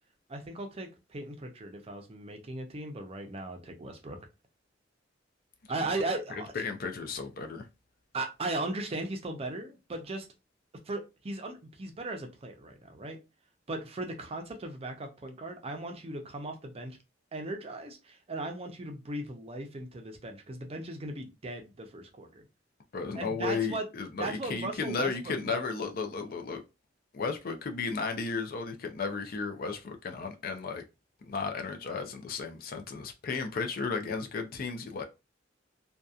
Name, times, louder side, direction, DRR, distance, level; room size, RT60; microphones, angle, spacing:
voice 1, 0.3-4.2 5.7-6.5 8.1-10.3 10.9-13.2 13.7-17.0 17.3-22.4 23.2-23.8 24.2-25.6, right 2 dB, 30° right, 0.5 m, -37 dB
voice 2, 6.3-7.7 22.9-26.6 27.1-30.8 31.2-35.0, left 4 dB, 50° left, 0.4 m, -34 dB
2.7 x 2.2 x 2.3 m
head